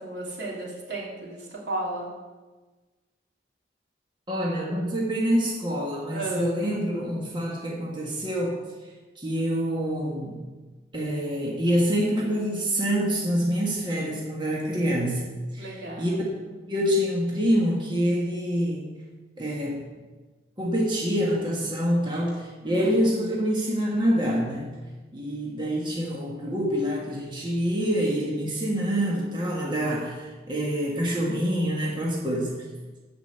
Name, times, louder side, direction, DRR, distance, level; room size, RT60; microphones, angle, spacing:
voice 1, 0.0-2.1 6.1-6.6 14.7-15.2 15.6-16.2 16.4-16.6 22.6-23.1, right 1 dB, 80° right, -4 dB, 3.1 m, -34 dB
voice 2, 4.3-8.6 9.2-10.4 10.9-15.2 15.5-16.1 16.7-18.9 19.4-19.8 20.6-24.7 25.1-32.6, equal, 25° right, -3 dB, 1.5 m, -26 dB
12.0 x 5.1 x 7.9 m, 1.3 s
head